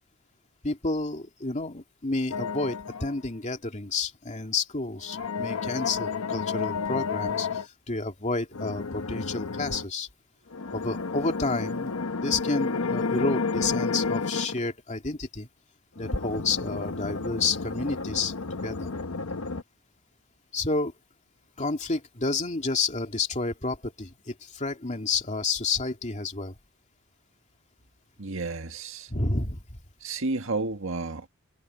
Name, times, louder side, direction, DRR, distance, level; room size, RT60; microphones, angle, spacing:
voice 1, 0.6-10.1 10.7-15.5 16.0-18.3 18.6-18.9 20.5-20.9 21.6-26.5 29.1-29.8, left 3 dB, 35° left, 2.6 m, -30 dB
sound 1, 2.3-3.2 5.0-7.7 8.5-9.9 10.5-14.6 16.0-19.6, left 4 dB, 75° left, 1.0 m, -31 dB
voice 2, 28.2-29.1 30.0-31.3, right 3 dB, 65° right, 1.7 m, -31 dB
head